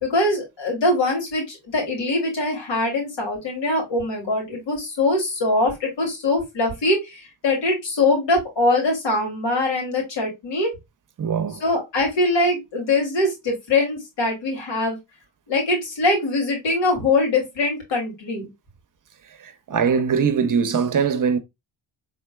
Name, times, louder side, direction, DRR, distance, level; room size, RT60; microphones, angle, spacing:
voice 1, 0.0-10.7 11.6-15.0 15.5-18.5, left 2 dB, 70° left, 2.6 m, -22 dB
voice 2, 11.2-11.6 19.4-21.4, right 6 dB, 45° right, 0.7 m, -21 dB
4.3 x 3.8 x 2.2 m
cardioid pair, 70°, 44 cm